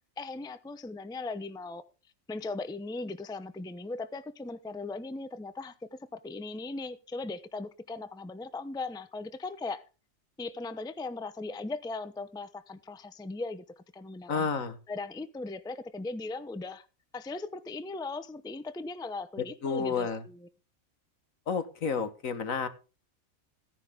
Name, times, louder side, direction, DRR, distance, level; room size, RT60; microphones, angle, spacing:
voice 1, 0.2-1.8 2.3-9.8 10.4-14.5 14.9-16.9 17.1-20.5, left 3 dB, 5° left, 0.6 m, -38 dB
voice 2, 14.3-14.8 19.6-20.2 21.5-22.7, left 5 dB, 70° left, 1.8 m, -30 dB
15.5 x 10.5 x 3.6 m
omnidirectional pair, 1.4 m